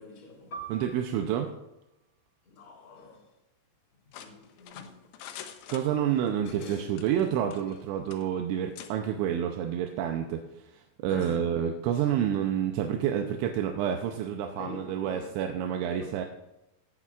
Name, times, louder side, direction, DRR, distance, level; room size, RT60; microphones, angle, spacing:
voice 1, 0.0-0.6 2.4-3.3 4.1-6.1 6.4-6.9 11.1-11.5 12.0-12.1 14.5-15.3 15.8-16.3, left 3 dB, 25° left, 3.2 m, -45 dB
Piano, 0.5-5.5 5.9-6.0 6.8-7.2, right 4 dB, 50° left, 1.4 m, -48 dB
voice 2, 0.7-1.5 5.7-16.3, right 9 dB, 85° right, 3.0 m, -29 dB
sound 1, 4.1-6.4 6.9-7.8 8.1-8.3 8.8-8.9, left 9 dB, 80° left, 2.9 m, -45 dB
17.0 x 10.0 x 2.4 m
omnidirectional pair, 5.2 m